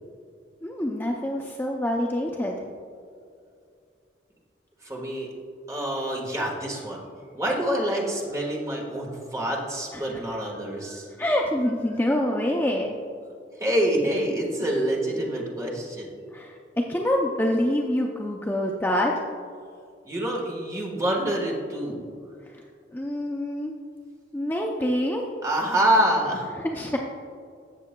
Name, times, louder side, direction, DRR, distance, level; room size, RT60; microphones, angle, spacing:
voice 1, 0.6-2.6 9.9-10.2 11.2-12.9 16.3-16.6 16.9-19.1 22.9-23.7 24.3-25.2 26.6-27.0, left 1 dB, 10° left, 0 dB, 0.5 m, -26 dB
voice 2, 4.8-5.3 5.7-7.0 7.3-11.1 13.6-16.1 20.0-22.1 25.4-26.5, right 1 dB, 20° right, -2 dB, 1.5 m, -26 dB
15.5 x 6.7 x 2.2 m, 2.3 s
head